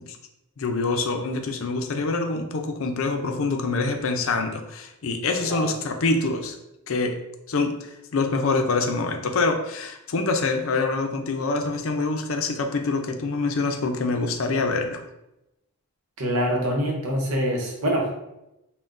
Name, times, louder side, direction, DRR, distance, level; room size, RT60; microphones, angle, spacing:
voice 1, 0.6-6.6 6.9-7.1 7.5-15.0, left 3 dB, 65° left, 4 dB, 0.5 m, -25 dB
voice 2, 16.2-18.1, equal, 75° right, 0 dB, 0.9 m, -25 dB
5.7 x 2.2 x 2.5 m, 0.90 s
head